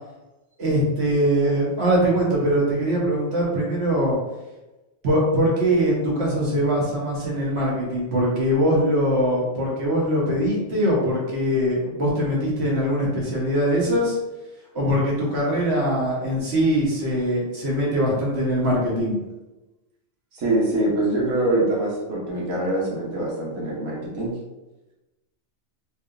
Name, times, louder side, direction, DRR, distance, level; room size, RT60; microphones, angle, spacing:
voice 1, 0.6-4.2 5.0-14.2 14.7-19.2, equal, 60° right, -4 dB, 1.3 m, -22 dB
voice 2, 20.3-24.3, right 1 dB, 85° right, -4 dB, 1.3 m, -24 dB
3.3 x 2.8 x 2.4 m, 1.0 s
omnidirectional pair, 1.3 m